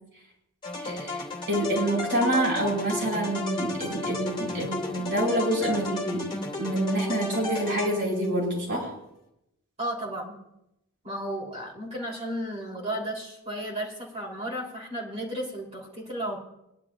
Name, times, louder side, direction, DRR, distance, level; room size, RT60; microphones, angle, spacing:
sound 1, 0.6-8.4, left 2 dB, 25° left, 2.5 m, -33 dB
voice 1, 0.8-8.9, right 1 dB, 55° right, -3 dB, 5.1 m, -27 dB
voice 2, 9.8-10.4 11.0-16.4, right 1 dB, 30° right, -4 dB, 3.4 m, -33 dB
21.5 x 11.5 x 2.5 m, 0.85 s
head